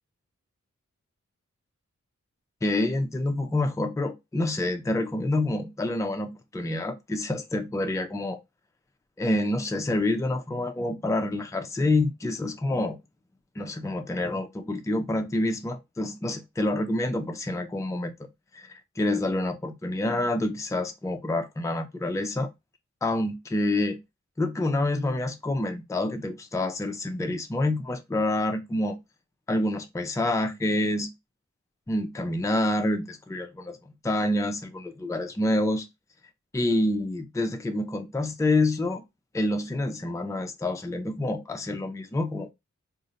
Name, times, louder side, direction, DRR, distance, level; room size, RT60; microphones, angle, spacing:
voice 1, 2.6-8.4 9.2-13.0 13.6-18.1 18.5-22.5 23.0-24.0 24.4-29.0 29.5-31.1 31.9-33.8 34.0-35.9 36.5-39.0 39.3-42.5, left 1 dB, 10° left, 0.4 m, -27 dB
2.5 x 2.1 x 3.8 m
wide cardioid pair, 75°, 30 cm